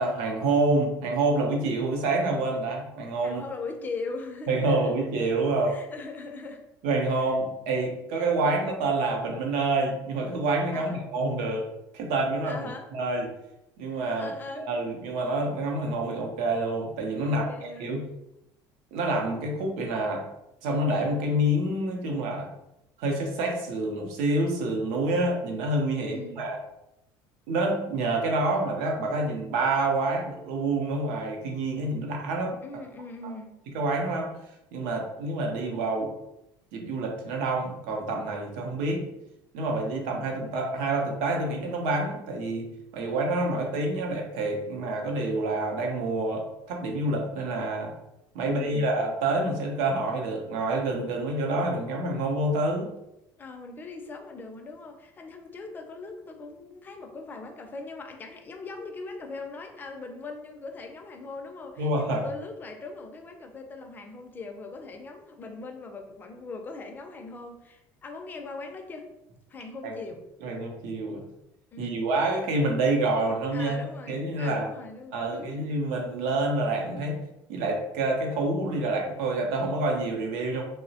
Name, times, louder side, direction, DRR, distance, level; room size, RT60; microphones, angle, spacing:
voice 1, 0.0-3.4 4.5-5.8 6.8-11.7 11.9-12.6 12.9-13.3 13.8-17.4 17.8-18.1 18.9-20.2 20.6-22.5 23.0-26.6 27.5-32.6 33.7-34.3 34.7-36.1 36.7-39.1 39.5-42.7 42.9-47.9 48.3-52.9 61.8-62.3 69.8-69.9 70.4-71.2 71.8-74.7 75.1-77.2 77.5-80.6, right 2 dB, 90° right, 1 dB, 0.6 m, -27 dB
voice 2, 3.2-4.9 5.7-6.6 7.2-7.3 10.7-11.0 12.4-12.9 13.9-14.7 17.2-18.0 26.0-26.3 32.6-33.6 48.4-48.9 53.4-69.1 69.5-70.2 71.7-72.1 73.5-75.6, left 3 dB, 20° left, 4 dB, 0.3 m, -40 dB
2.9 x 2.0 x 2.7 m, 0.88 s
cardioid pair, 145°, 9 cm